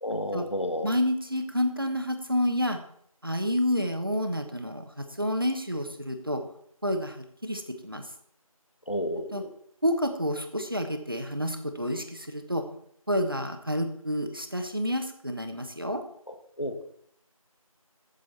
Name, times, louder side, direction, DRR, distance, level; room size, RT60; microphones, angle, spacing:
voice 1, 0.0-0.9 8.9-9.5 16.6-16.8, left 1 dB, 55° left, 6 dB, 1.7 m, -31 dB
voice 2, 0.8-2.8 3.2-6.4 6.8-8.1 9.3-9.4 9.8-12.6 13.1-16.0, equal, 40° right, 6 dB, 1.1 m, -29 dB
11.5 x 8.3 x 4.2 m, 0.69 s
figure-of-eight pair, 175°, 18 cm